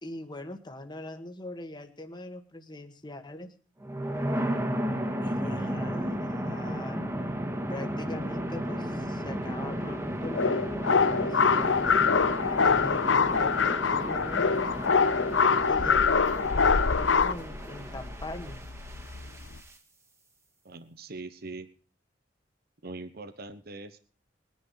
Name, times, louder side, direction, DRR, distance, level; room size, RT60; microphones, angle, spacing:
voice 1, 0.0-3.5 5.2-7.0 7.7-12.0 12.7-14.7 15.7-18.6, left 2 dB, 25° left, 6 dB, 1.7 m, -42 dB
sound 1, 3.8-19.7, equal, 15° right, 1.9 m, -34 dB
sound 2, 10.3-17.3, left 5 dB, 90° left, 0.8 m, -24 dB
sound 3, 11.6-19.6, left 2 dB, 70° left, 1.1 m, -39 dB
voice 2, 20.6-21.7 22.8-24.0, right 3 dB, 55° right, 12 dB, 1.1 m, -41 dB
21.0 x 10.5 x 5.7 m, 0.41 s
head